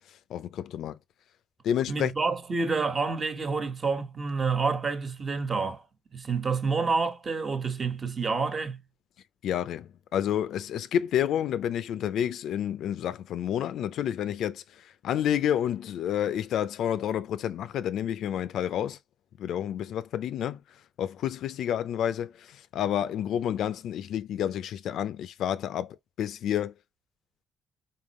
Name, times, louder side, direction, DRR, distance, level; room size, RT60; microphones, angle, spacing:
voice 1, 0.3-1.0 1.6-2.1 9.4-19.0 19.4-20.6 21.0-26.7, left 10 dB, 75° left, 0.5 m, -29 dB
voice 2, 1.9-5.8 6.1-8.8, right 4 dB, 40° right, 1.3 m, -28 dB
4.4 x 3.8 x 3.0 m
cardioid pair, 90°, 0 cm